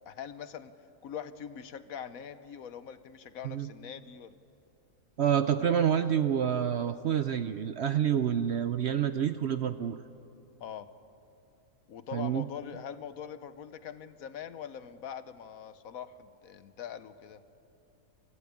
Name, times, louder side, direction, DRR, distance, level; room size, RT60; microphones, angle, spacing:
voice 1, 0.1-0.7 1.0-4.3 10.6-10.9 11.9-17.4, left 8 dB, 70° left, 12 dB, 1.2 m, -43 dB
voice 2, 5.2-10.0 12.1-12.4, right 9 dB, 60° right, 10 dB, 0.7 m, -28 dB
24.5 x 15.5 x 8.4 m, 2.7 s
omnidirectional pair, 1.6 m